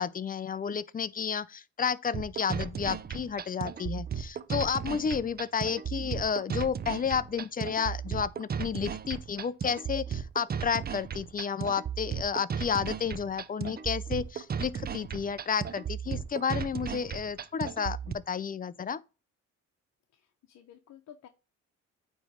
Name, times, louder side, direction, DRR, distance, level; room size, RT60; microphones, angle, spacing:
voice 1, 0.0-19.0, left 6 dB, 30° left, 0.5 m, -31 dB
sound 1, 2.1-18.1, right 7 dB, 30° right, 0.5 m, -35 dB
voice 2, 20.1-21.3, left 9 dB, 65° left, 0.9 m, -53 dB
9.0 x 3.2 x 5.1 m
cardioid pair, 90°, 30 cm